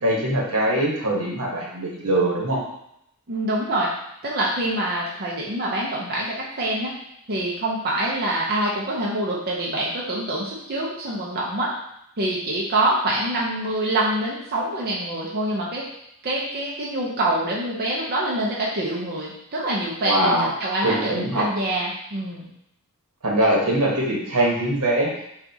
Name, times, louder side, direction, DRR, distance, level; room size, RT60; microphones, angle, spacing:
voice 1, 0.0-2.6 20.0-20.5 20.8-21.4 23.2-25.1, right 1 dB, 80° right, -3 dB, 1.1 m, -22 dB
voice 2, 3.3-3.9 4.2-6.9 7.3-11.7 12.2-15.8 16.2-22.5, right 1 dB, 45° right, -4 dB, 0.6 m, -25 dB
5.6 x 2.4 x 2.7 m, 0.77 s
head